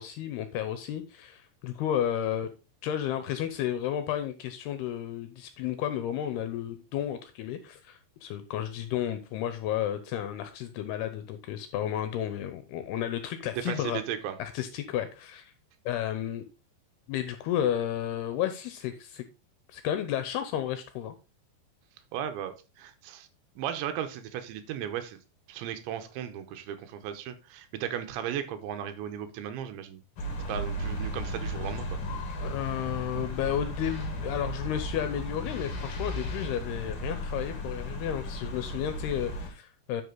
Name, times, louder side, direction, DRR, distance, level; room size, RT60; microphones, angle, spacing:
voice 1, 0.0-2.5 2.8-14.0 14.4-15.5 15.9-16.5 17.1-19.3 19.7-21.1 32.4-40.0, left 10 dB, 80° left, 10 dB, 2.4 m, -32 dB
voice 2, 13.7-14.4 22.1-23.3 23.6-25.2 25.5-30.0 30.5-31.9, right 9 dB, 85° right, 9 dB, 3.2 m, -36 dB
sound 1, 30.2-39.5, equal, 60° left, 1.5 m, -35 dB
11.0 x 5.2 x 3.9 m, 0.30 s
omnidirectional pair, 5.3 m